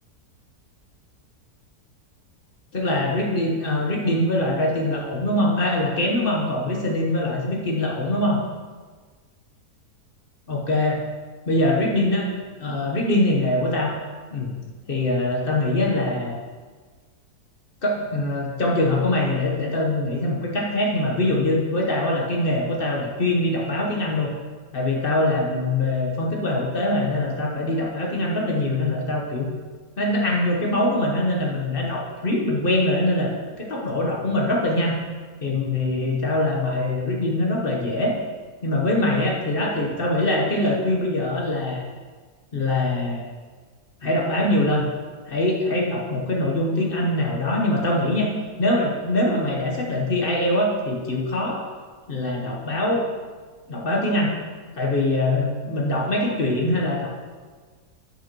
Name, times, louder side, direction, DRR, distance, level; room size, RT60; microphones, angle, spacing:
voice 1, 2.7-8.4 10.5-11.0 11.5-12.3 12.6-13.9 14.3-14.5 14.9-16.4 17.8-24.3 24.7-29.5 30.0-33.3 33.6-35.0 35.4-38.2 38.6-41.8 42.5-43.3 44.0-44.9 45.3-48.3 48.6-51.6 52.1-53.1 53.7-54.3 54.7-57.2, left 1 dB, 40° left, -1 dB, 1.1 m, -23 dB
10.0 x 5.8 x 3.0 m, 1.4 s
omnidirectional pair, 1.7 m